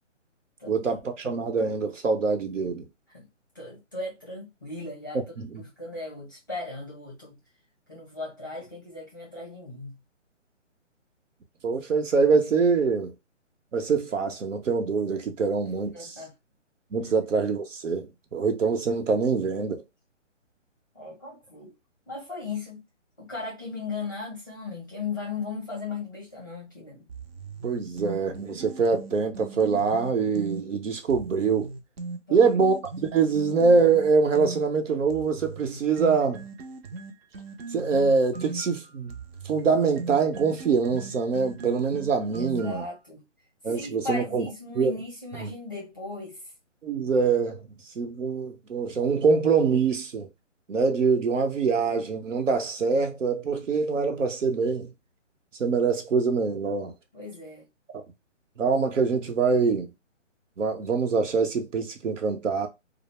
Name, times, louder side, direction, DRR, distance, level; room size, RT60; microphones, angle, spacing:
voice 1, 0.7-2.9 5.4-5.6 11.6-13.1 13.7-16.1 16.9-19.8 27.6-31.7 32.3-36.4 37.7-39.1 39.5-42.8 43.6-44.5 44.8-45.0 45.4-45.5 46.8-47.7 48.0-50.3 50.7-54.9 55.6-56.9 58.6-59.9 60.6-62.7, right 5 dB, 80° right, 0.9 m, -24 dB
voice 2, 3.5-5.2 5.6-7.4 7.9-10.0 15.9-16.3 17.0-17.2 20.9-21.7 22.1-22.8 23.2-27.1 32.3-32.5 42.4-43.2 43.7-46.4 57.1-57.6, left 3 dB, 15° left, 0.6 m, -37 dB
sound 1, 27.1-30.6 31.1-34.6 35.1-42.9, right 3 dB, 55° right, 0.6 m, -39 dB
2.4 x 2.0 x 3.1 m
hypercardioid pair, 170°, 37 cm